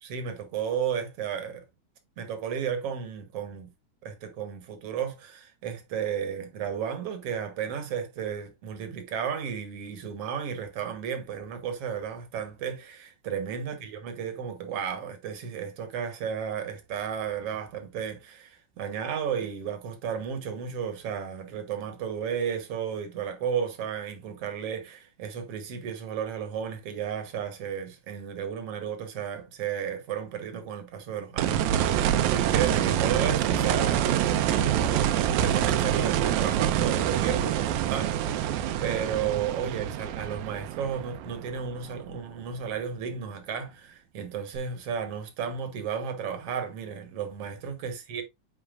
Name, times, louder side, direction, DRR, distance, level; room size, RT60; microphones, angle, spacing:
voice 1, 0.0-1.6 2.2-3.7 4.0-48.2, right 7 dB, 60° right, 1.8 m, -33 dB
sound 1, 31.4-42.3 44.6-44.7, right 10 dB, 80° right, 1.8 m, -26 dB
9.6 x 4.4 x 2.4 m
omnidirectional pair, 3.8 m